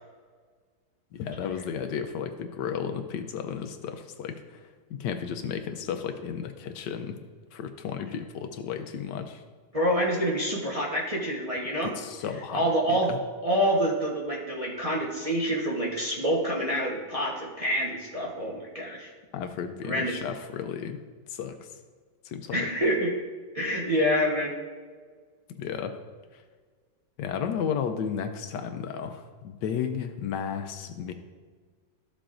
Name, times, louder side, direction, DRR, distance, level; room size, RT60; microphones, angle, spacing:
voice 1, 1.1-4.6 4.9-7.2 7.5-9.4 11.8-13.2 19.3-21.0 21.3-21.7 22.2-22.7 25.5-26.0 26.3-26.4 27.2-31.1, left 7 dB, 75° left, 8 dB, 1.2 m, -33 dB
voice 2, 9.7-11.9 12.5-13.1 13.4-19.1 19.8-20.2 22.5-23.1 23.5-24.5, equal, 25° right, -4 dB, 0.9 m, -27 dB
13.0 x 6.9 x 2.5 m, 1.6 s
omnidirectional pair, 2.0 m